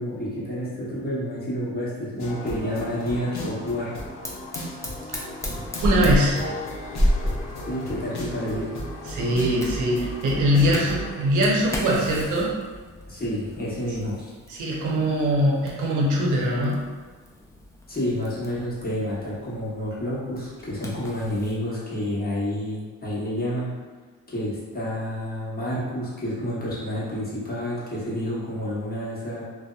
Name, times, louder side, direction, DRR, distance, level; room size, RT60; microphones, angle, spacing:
voice 1, 0.0-3.9 7.6-8.7 13.1-14.3 17.9-23.7 24.3-29.4, equal, 30° left, -8 dB, 0.9 m, -29 dB
sound 1, 2.2-11.1, equal, 60° left, 0.6 m, -35 dB
Fire, 4.2-21.6, equal, 10° left, 0.4 m, -33 dB
voice 2, 5.8-6.4 9.1-12.5 14.5-16.8, equal, 80° right, -3 dB, 0.6 m, -22 dB
2.6 x 2.0 x 2.3 m, 1.4 s
cardioid pair, 90°, 30 cm